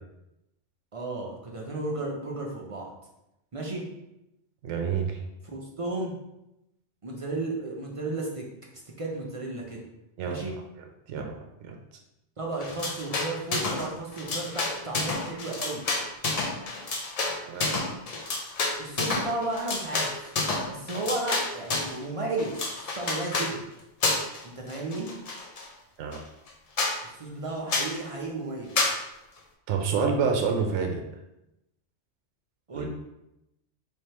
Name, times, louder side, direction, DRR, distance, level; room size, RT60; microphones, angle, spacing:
voice 1, 0.9-2.9 3.5-3.8 5.4-6.1 7.0-8.5 8.7-9.8 10.3-10.5 12.4-15.8 18.8-20.3 20.6-23.6 24.4-25.1 27.0-28.7 32.7-32.8, right 2 dB, 45° right, -2 dB, 0.4 m, -33 dB
voice 2, 4.6-5.2 10.2-10.5 11.1-11.4 11.6-11.8 17.4-17.8 26.0-26.2 29.7-31.0 32.7-32.9, right 5 dB, 75° right, 3 dB, 0.9 m, -28 dB
sound 1, 12.6-13.9 14.1-22.0 22.4-23.5 24.0-24.4 24.7-25.7 26.1-26.2 26.5-26.6 26.8-27.0 27.7-28.0 28.8-29.0, left 3 dB, 50° left, 0.4 m, -29 dB
3.3 x 2.6 x 4.2 m, 0.89 s
omnidirectional pair, 1.2 m